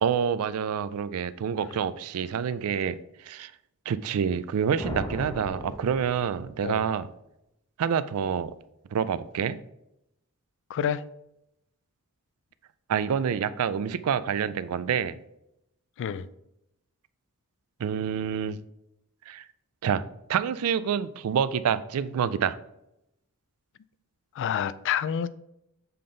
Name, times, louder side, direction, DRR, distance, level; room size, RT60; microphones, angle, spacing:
voice 1, 0.0-3.5 3.9-7.1 7.8-8.5 8.9-9.6 12.9-15.2 17.8-18.6 19.3-19.4 19.8-20.0 20.3-22.6, right 7 dB, 70° right, 0.4 m, -27 dB
sound 1, 4.8-6.7, left 1 dB, 15° left, 0.9 m, -37 dB
voice 2, 10.7-11.0 16.0-16.3 24.4-25.3, left 8 dB, 55° left, 0.3 m, -28 dB
6.8 x 3.8 x 3.8 m
head